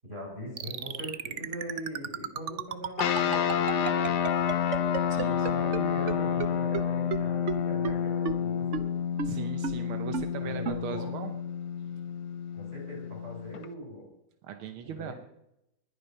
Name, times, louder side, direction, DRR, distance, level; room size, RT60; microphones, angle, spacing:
voice 1, 0.0-4.1 5.2-8.9 10.4-11.3 12.5-14.1 14.8-15.1, equal, 30° right, -1 dB, 7.3 m, -41 dB
sound 1, 0.6-5.8 6.1-6.2 6.4-6.5 6.7-6.8 7.1-7.2 7.5-7.6 7.8-7.9 8.2-8.3 8.7-8.8 9.2-9.3 9.6-9.7 10.1-10.2 10.6-10.8, right 8 dB, 70° right, 0.7 m, -31 dB
sound 2, 3.0-13.6, left 8 dB, 60° left, 1.5 m, -29 dB
voice 2, 5.1-5.6 9.2-11.3 14.4-15.1, right 8 dB, 85° right, 7 dB, 1.8 m, -39 dB
20.5 x 10.0 x 5.6 m, 0.84 s
omnidirectional pair, 2.2 m